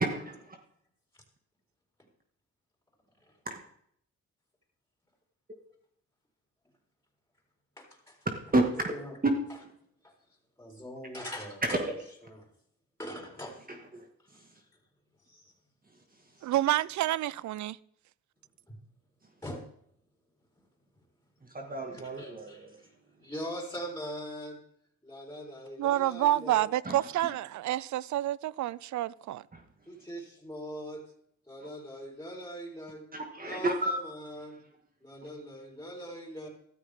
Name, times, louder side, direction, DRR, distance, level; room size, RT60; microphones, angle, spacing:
voice 1, 0.1-0.6 3.5-3.6 8.5-9.0 9.2-9.3 11.6-11.8 13.9-14.1 21.5-22.7 26.8-27.0 29.5-29.6 33.1-33.9, right 2 dB, 30° right, 2.0 m, -30 dB
voice 2, 7.8-8.2 8.8-9.2 10.0-10.1 10.6-11.8 12.3-12.4 13.0-13.6 14.5-14.6 15.3-15.5 16.4-16.5 18.7-18.8 19.4-19.6 21.9-22.7 23.2-24.6 25.0-26.7 29.9-31.0 31.5-33.0 33.4-34.6 35.0-36.5, equal, 10° left, 4.5 m, -42 dB
voice 3, 16.4-17.8 25.8-29.4, right 14 dB, 70° right, 0.5 m, -28 dB
13.5 x 13.0 x 3.7 m
cardioid pair, 70°, 30 cm